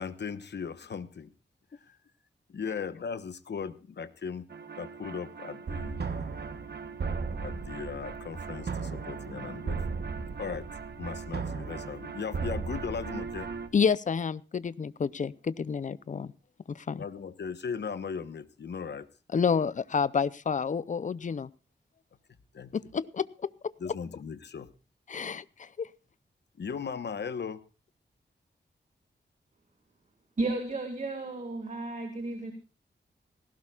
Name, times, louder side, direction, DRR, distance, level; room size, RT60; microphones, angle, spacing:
voice 1, 0.0-1.3 1.8-2.0 2.5-4.5 4.8-6.1 7.4-10.0 10.4-10.7 11.0-13.5 16.9-19.1 22.5-22.8 23.8-24.7 26.6-27.6, left 6 dB, 65° left, 12 dB, 1.0 m, -37 dB
sound 1, 4.5-13.7, right 5 dB, 60° right, 1.2 m, -36 dB
voice 2, 13.7-16.3 16.7-17.0 19.3-21.5 22.7-23.7 25.1-25.9, left 6 dB, 40° left, 18 dB, 0.5 m, -29 dB
voice 3, 30.4-32.5, right 2 dB, 40° right, 5 dB, 1.9 m, -33 dB
18.5 x 16.5 x 2.4 m, 0.33 s
wide cardioid pair, 130°, 19 cm